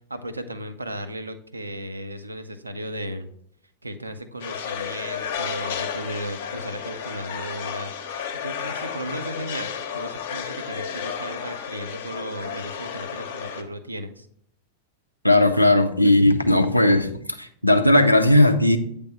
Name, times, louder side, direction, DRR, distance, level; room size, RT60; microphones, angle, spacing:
voice 1, 0.1-3.3 3.8-14.3, right 1 dB, 80° right, 9 dB, 0.5 m, -35 dB
sound 1, 4.4-13.6, left 7 dB, 55° left, 0.7 m, -32 dB
voice 2, 15.2-17.1 17.4-18.8, left 1 dB, 90° left, 7 dB, 0.5 m, -17 dB
8.3 x 3.4 x 4.1 m, 0.67 s
figure-of-eight pair, 90°, 0 cm